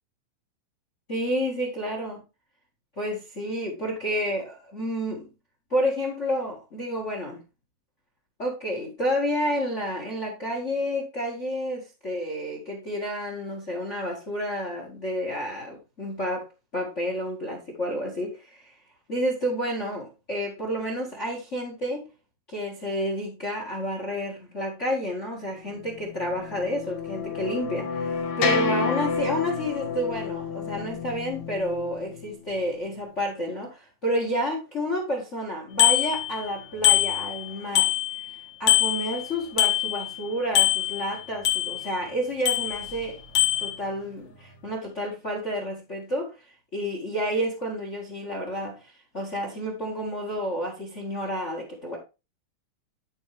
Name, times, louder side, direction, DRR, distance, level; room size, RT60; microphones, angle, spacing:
voice 1, 1.1-2.2 3.0-5.3 5.7-7.4 8.4-18.7 19.1-22.0 22.5-38.0 38.6-43.2 43.6-46.3 46.7-52.0, equal, 35° left, 1.2 m, -30 dB
sound 1, 25.9-32.3, left 5 dB, 80° left, 3.1 m, -30 dB
Bicycle bell, 35.8-36.5 36.8-38.4 38.7-40.2 40.6-42.0 42.5-43.0 43.4-43.7, left 13 dB, 60° left, 2.5 m, -23 dB
12.5 x 4.7 x 3.3 m
omnidirectional pair, 4.1 m